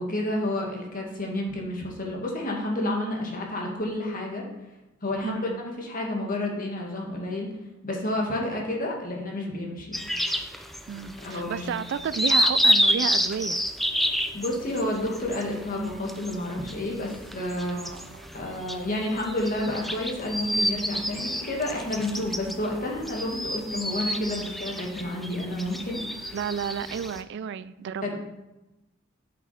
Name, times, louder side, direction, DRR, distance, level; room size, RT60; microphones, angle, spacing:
voice 1, 0.0-4.4 5.0-7.5 7.8-9.9 11.2-11.7 14.3-18.0 18.3-26.0 26.3-26.4 28.0-28.2, left 1 dB, 45° left, 0 dB, 1.8 m, -30 dB
voice 2, 5.2-5.6 10.9-13.6 17.6-18.3 26.3-28.2, right 7 dB, 60° right, 16 dB, 0.3 m, -32 dB
sound 1, 9.9-27.2, equal, ahead, 0.5 m, -29 dB
9.2 x 6.1 x 4.3 m, 0.99 s
head